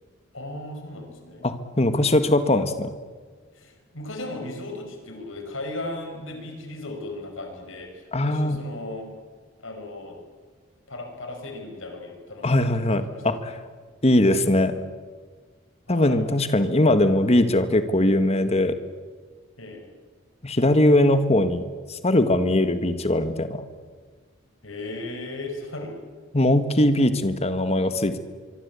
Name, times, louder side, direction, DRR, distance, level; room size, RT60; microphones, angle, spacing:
voice 1, 0.3-1.5 3.5-9.1 9.6-10.2 10.9-13.4 15.9-16.3 19.6-19.8 24.6-26.0, left 2 dB, 75° left, 4 dB, 5.5 m, -36 dB
voice 2, 1.4-2.9 8.1-8.6 12.4-13.5 14.0-14.8 15.9-18.8 20.4-23.6 26.3-28.2, left 1 dB, 30° left, 10 dB, 1.7 m, -21 dB
25.0 x 24.0 x 8.5 m, 1.5 s
head